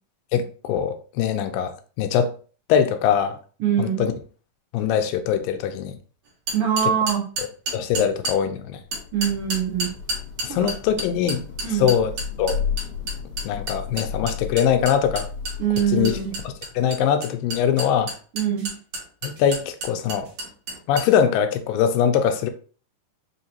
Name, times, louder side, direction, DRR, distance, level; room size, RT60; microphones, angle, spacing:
voice 1, 0.3-2.3 2.7-3.4 3.8-4.1 4.7-6.0 7.4-7.5 7.7-8.8 10.4-12.1 12.4-12.6 13.4-15.3 15.9-16.1 16.8-18.1 19.2-20.3 20.9-22.5, left 8 dB, 90° left, 2.3 m, -22 dB
voice 2, 3.6-4.0 6.5-7.3 9.1-9.9 10.5-10.7 11.6-11.9 15.6-16.4 18.3-18.7, right 9 dB, 90° right, 1.2 m, -23 dB
sound 1, 6.5-8.4 8.9-21.1, right 2 dB, 55° right, 2.0 m, -30 dB
Thunder / Rain, 8.8-16.8, left 6 dB, 70° left, 1.6 m, -34 dB
5.6 x 2.9 x 2.7 m
omnidirectional pair, 3.9 m